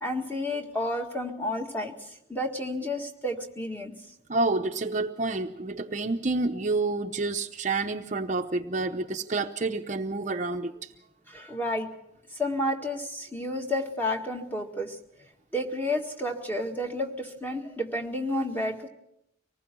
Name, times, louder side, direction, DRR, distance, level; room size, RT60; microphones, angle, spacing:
voice 1, 0.0-2.0 2.3-4.0 11.3-11.9 12.3-15.0 15.5-18.9, left 1 dB, 10° left, 3 dB, 1.8 m, -31 dB
voice 2, 4.3-10.9, right 3 dB, 40° right, 6 dB, 0.8 m, -29 dB
25.0 x 19.5 x 6.1 m, 0.77 s
head